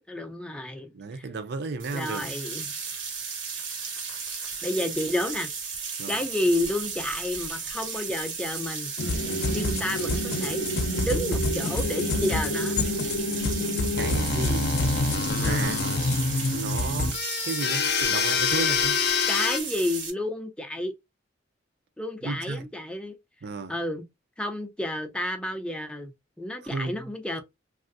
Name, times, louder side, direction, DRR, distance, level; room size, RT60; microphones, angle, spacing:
voice 1, 0.0-1.3 1.9-2.7 4.6-5.5 6.1-8.9 9.5-10.7 11.0-12.8 19.3-20.9 22.0-23.2 23.7-24.1 24.4-26.1 26.4-27.4, left 1 dB, 5° left, 0.4 m, -30 dB
voice 2, 0.9-2.3 6.0-6.2 13.9-14.7 15.3-15.9 16.5-17.2 17.4-19.0 22.2-22.6 23.4-23.7 26.7-27.1, right 4 dB, 60° right, 0.4 m, -33 dB
sound 1, 1.8-20.1, right 5 dB, 80° right, 1.1 m, -35 dB
sound 2, 9.0-19.6, left 3 dB, 55° left, 0.5 m, -26 dB
3.3 x 2.3 x 2.5 m
head